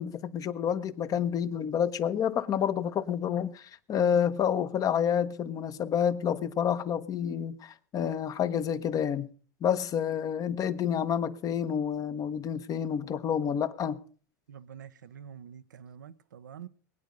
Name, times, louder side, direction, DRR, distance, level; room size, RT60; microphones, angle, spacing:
voice 1, 0.0-9.3 9.6-14.0, left 8 dB, 40° left, 1.1 m, -29 dB
voice 2, 14.5-16.7, right 8 dB, 85° right, 0.8 m, -46 dB
21.5 x 9.4 x 5.3 m
hypercardioid pair, 95°, 10 cm